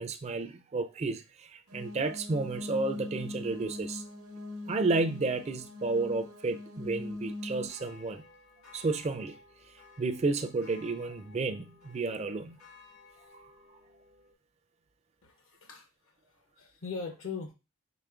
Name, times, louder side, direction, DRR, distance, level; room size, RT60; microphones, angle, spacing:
voice 1, 0.0-4.0 4.7-8.3 8.7-9.4 10.0-12.6, right 3 dB, 30° right, 0.3 m, -32 dB
sound 1, 1.7-7.7, left 2 dB, 75° right, 0.8 m, -41 dB
sound 2, 7.6-14.3, left 4 dB, 80° left, 1.8 m, -56 dB
voice 2, 15.2-17.5, left 5 dB, 65° left, 0.6 m, -41 dB
4.9 x 3.5 x 2.4 m
head